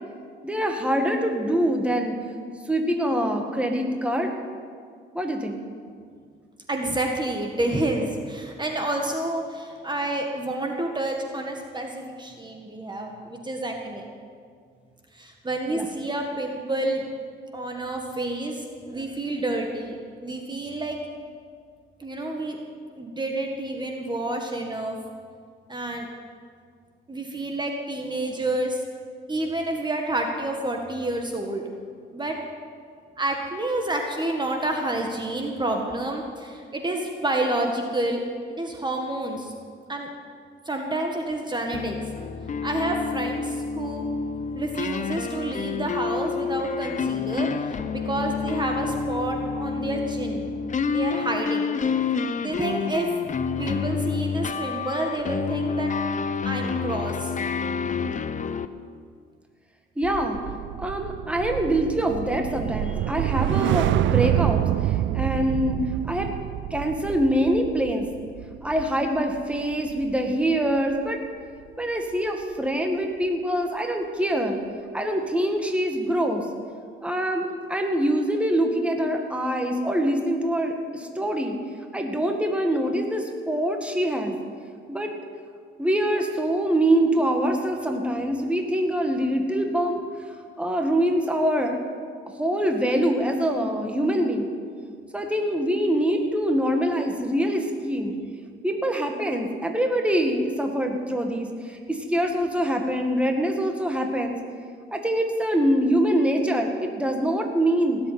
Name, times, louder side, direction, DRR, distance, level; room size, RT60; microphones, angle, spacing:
voice 1, 0.4-2.1 2.7-4.3 5.1-5.6 15.7-15.9 60.0-60.4 60.8-65.8 66.1-66.3 66.7-68.1 68.6-71.2 71.8-74.6 74.9-76.5 77.0-81.6 81.9-84.4 84.9-85.1 85.8-90.0 90.6-91.8 92.3-94.5 95.1-98.2 98.6-104.4 104.9-108.0, right 1 dB, 5° right, 3 dB, 1.9 m, -24 dB
voice 2, 6.7-14.1 15.1-17.1 17.5-21.0 22.0-22.6 23.0-25.0 25.7-26.1 27.1-28.8 29.3-31.6 32.1-32.4 33.2-38.2 38.5-39.5 39.9-40.1 40.6-42.0 42.6-44.0 44.5-50.4 50.9-51.7 52.4-53.1 53.6-55.9 56.4-57.3, right 2 dB, 20° right, 2 dB, 1.8 m, -29 dB
sound 1, 41.7-58.7, left 5 dB, 40° left, 0.7 m, -28 dB
sound 2, 60.0-70.4 70.8-71.1, right 14 dB, 70° right, 0.4 m, -27 dB
17.5 x 8.0 x 9.5 m, 2.1 s
cardioid pair, 90°, 20 cm